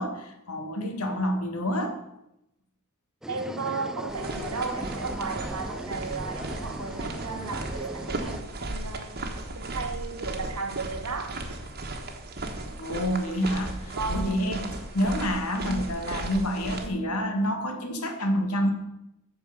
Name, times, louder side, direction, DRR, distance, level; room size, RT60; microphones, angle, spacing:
voice 1, 0.0-2.0 12.8-18.7, equal, 75° left, 1.7 m, -28 dB
sound 1, 3.2-8.4, right 1 dB, 5° right, 0.4 m, -38 dB
voice 2, 3.3-9.3 9.5-11.4 13.9-14.4, right 4 dB, 85° right, 1.4 m, -34 dB
sound 2, 4.1-16.9, right 2 dB, 45° right, 1.4 m, -36 dB
13.5 x 4.7 x 6.8 m
head